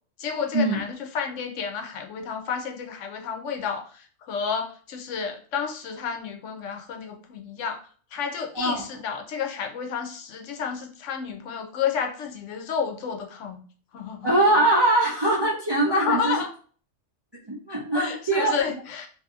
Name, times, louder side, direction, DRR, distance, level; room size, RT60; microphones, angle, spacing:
voice 1, 0.2-7.8 8.1-13.6 13.9-14.3 15.9-16.5 18.0-19.1, left 6 dB, 80° left, 4 dB, 0.9 m, -31 dB
voice 2, 14.2-16.4 17.5-18.6, right 1 dB, 40° right, -4 dB, 0.3 m, -22 dB
2.7 x 2.6 x 2.4 m, 0.43 s
omnidirectional pair, 1.3 m